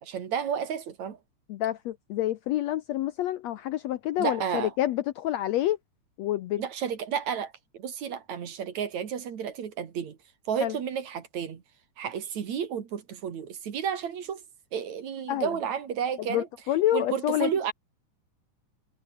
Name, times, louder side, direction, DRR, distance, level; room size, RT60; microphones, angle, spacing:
voice 1, 0.0-1.2 4.2-4.7 6.6-10.2 10.5-11.6 12.0-14.4 14.7-16.5 16.9-17.7, right 8 dB, 60° right, 3.4 m, -32 dB
voice 2, 1.5-5.8 6.2-6.6 10.6-10.8 15.3-15.6 16.2-17.5, left 13 dB, 70° left, 1.7 m, -28 dB
omnidirectional pair, 3.7 m